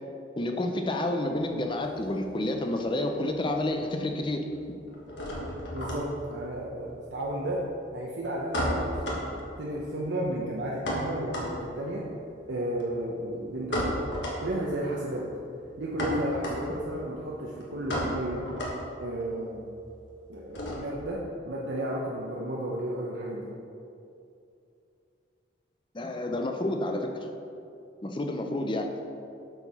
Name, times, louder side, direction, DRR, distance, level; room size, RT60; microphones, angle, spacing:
voice 1, 0.4-4.4 20.6-20.7 25.9-27.2 28.0-28.9, left 1 dB, 25° left, 4 dB, 0.6 m, -29 dB
sound 1, 1.3-2.9 3.1-21.1, equal, 70° left, 1.6 m, -35 dB
voice 2, 5.7-7.6 7.9-9.3 9.6-12.1 12.5-14.0 14.4-15.3 15.8-18.5 19.0-19.7 20.3-23.5, right 1 dB, 70° right, -4 dB, 0.8 m, -33 dB
8.1 x 4.6 x 5.6 m, 2.6 s
head